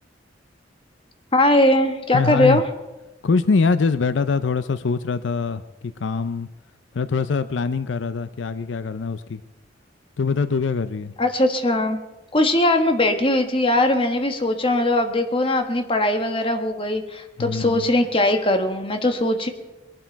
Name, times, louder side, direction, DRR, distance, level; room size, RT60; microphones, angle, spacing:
voice 1, 1.3-2.6 11.2-12.0 12.3-19.5, left 1 dB, 30° left, 5 dB, 1.4 m, -20 dB
voice 2, 2.1-2.6 3.2-6.5 6.9-9.4 10.2-11.1 17.4-17.8, left 4 dB, 75° left, 13 dB, 0.5 m, -23 dB
22.0 x 11.5 x 4.6 m, 1.1 s
head